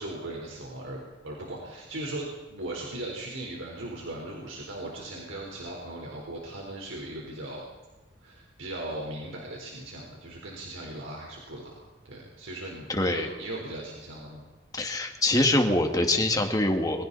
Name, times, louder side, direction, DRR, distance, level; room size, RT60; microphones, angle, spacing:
voice 1, 0.0-7.6 8.2-11.6 12.0-14.4, right 1 dB, 90° right, -2 dB, 4.2 m, -38 dB
voice 2, 12.9-13.3 14.7-17.1, left 1 dB, 20° left, 4 dB, 2.1 m, -24 dB
27.5 x 23.0 x 4.2 m, 1.3 s
head